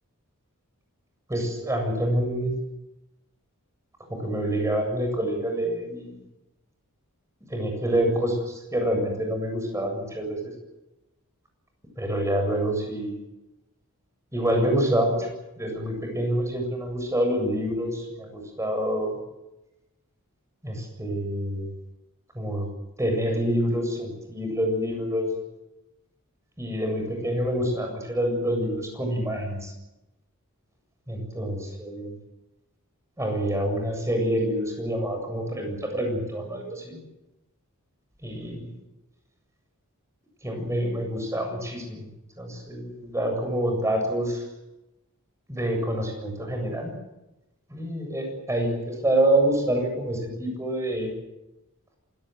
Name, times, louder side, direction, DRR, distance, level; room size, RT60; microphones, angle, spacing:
voice 1, 1.3-2.5 4.1-6.1 7.5-10.5 12.0-13.1 14.3-15.3 15.6-19.2 20.6-21.7 22.3-22.7 23.0-25.3 26.6-29.7 31.1-32.2 33.2-37.0 38.2-38.7 40.4-42.1 42.4-44.4 45.5-46.9 47.7-51.1, right 1 dB, 15° right, 3 dB, 7.6 m, -27 dB
27.5 x 17.5 x 8.0 m, 0.95 s
head